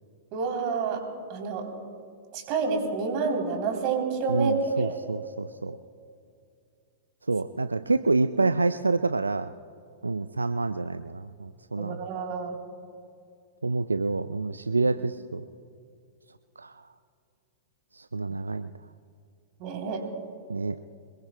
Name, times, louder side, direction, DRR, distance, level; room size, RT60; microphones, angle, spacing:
voice 1, 0.3-1.0 1.3-1.7 2.3-5.0 11.8-12.6 19.6-20.0, right 4 dB, 45° right, 3 dB, 3.2 m, -29 dB
voice 2, 4.3-5.8 7.3-9.5 10.0-12.0 13.6-15.4 16.6-16.8 17.9-18.7 20.5-20.8, right 3 dB, 85° right, 11 dB, 0.4 m, -27 dB
26.0 x 21.5 x 2.2 m, 2.4 s
figure-of-eight pair, 100°, 0 cm